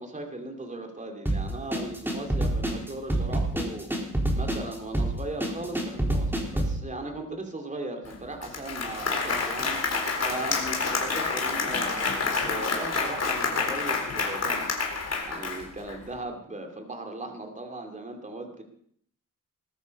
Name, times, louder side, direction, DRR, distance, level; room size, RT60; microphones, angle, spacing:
voice 1, 0.0-9.8 10.2-14.7 15.2-18.6, right 2 dB, 25° right, 3 dB, 2.7 m, -38 dB
sound 1, 1.3-6.8, right 1 dB, 5° right, 3.8 m, -27 dB
Applause, 8.1-8.2 8.4-16.0, left 4 dB, 50° left, 4.0 m, -28 dB
20.5 x 13.0 x 5.4 m, 0.64 s
wide cardioid pair, 140°, 32 cm